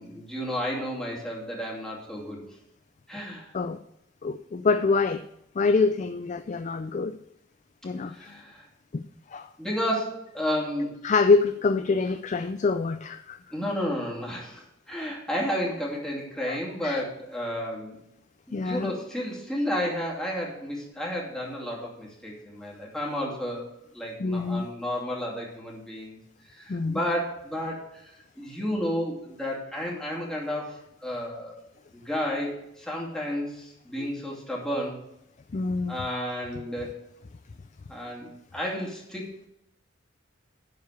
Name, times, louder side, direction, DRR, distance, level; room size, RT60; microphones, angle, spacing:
voice 1, 0.0-2.5 3.1-3.5 8.1-8.6 9.6-10.9 13.5-18.0 18.5-23.6 23.9-26.2 26.5-31.6 31.9-35.0 35.9-36.9 37.9-39.5, equal, 5° left, -4 dB, 2.6 m, -32 dB
voice 2, 4.2-5.2 5.6-7.2 7.8-8.3 8.9-9.0 9.3-9.5 11.0-13.4 16.5-16.6 16.8-17.0 18.5-18.9 24.2-24.7 26.7-27.0 34.0-34.1 35.5-36.0, left 4 dB, 35° left, 11 dB, 0.4 m, -25 dB
11.5 x 4.8 x 6.8 m, 0.80 s
head